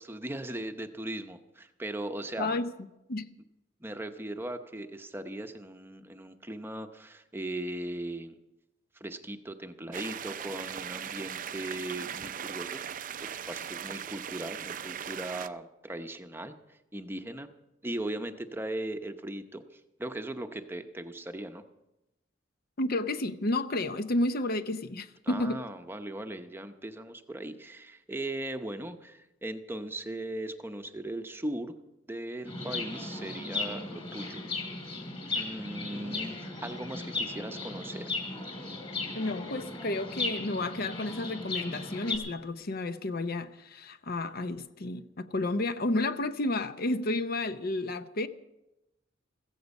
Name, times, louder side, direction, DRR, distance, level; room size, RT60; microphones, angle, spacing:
voice 1, 0.0-2.6 3.8-8.3 8.9-17.5 17.8-21.6 25.2-31.8 32.1-34.6 35.3-38.1, right 1 dB, 10° right, 0.8 m, -38 dB
voice 2, 2.4-2.7 3.1-3.3 22.8-25.6 39.1-48.3, left 2 dB, 50° left, 0.7 m, -31 dB
sound 1, 9.9-15.5, right 8 dB, 45° right, 0.5 m, -39 dB
Chirp tweet, 32.5-42.2, left 3 dB, 30° left, 3.5 m, -36 dB
15.0 x 15.0 x 5.4 m
head